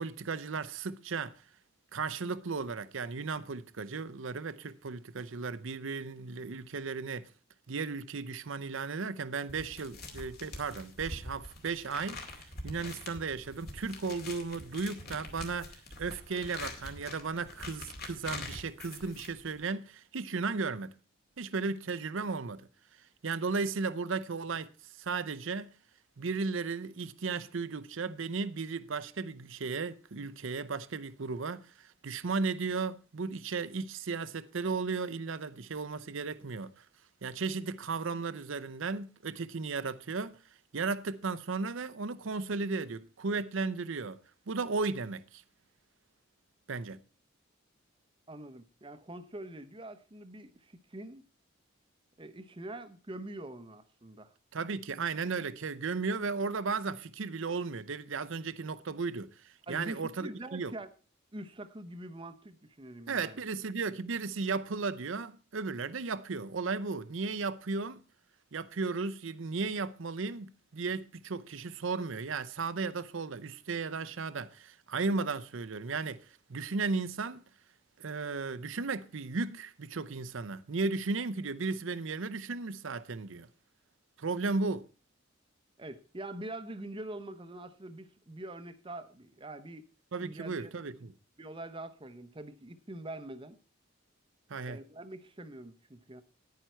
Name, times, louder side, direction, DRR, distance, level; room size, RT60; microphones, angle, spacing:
voice 1, 0.0-1.4 1.9-7.3 7.7-12.2 12.6-20.9 21.4-22.6 23.2-24.7 25.0-25.7 26.2-36.8 37.2-40.4 40.7-44.2 44.5-45.4 46.7-47.0 54.5-60.7 63.1-68.0 68.5-77.4 78.0-83.5 84.2-84.9 90.1-91.1 94.5-94.8, right 4 dB, 70° right, 0.6 m, -35 dB
sound 1, 9.5-19.6, left 2 dB, 50° left, 2.3 m, -45 dB
voice 2, 48.3-51.2 52.2-54.3 59.7-60.9 61.3-63.4 85.8-89.9 90.2-90.7 91.4-93.6 94.7-96.2, right 1 dB, 25° right, 0.7 m, -44 dB
10.5 x 9.2 x 4.4 m
head